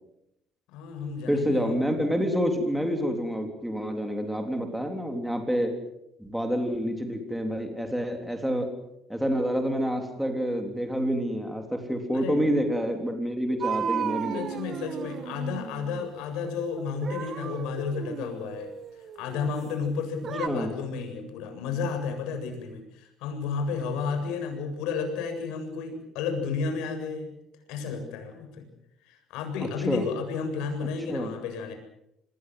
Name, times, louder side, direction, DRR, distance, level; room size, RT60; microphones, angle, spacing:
voice 1, 0.7-1.7 12.1-12.4 14.3-18.7 19.1-27.3 27.7-28.6 29.0-31.7, left 5 dB, 85° left, 5 dB, 7.6 m, -32 dB
voice 2, 1.3-5.7 6.2-8.7 9.1-14.6 20.5-20.7 29.6-30.0 31.1-31.3, equal, ahead, 4 dB, 3.6 m, -28 dB
sound 1, 13.6-16.1 16.8-19.7 20.2-20.5, right 7 dB, 40° right, 1.7 m, -34 dB
26.5 x 21.0 x 7.9 m, 0.82 s
cardioid pair, 140°, 0 cm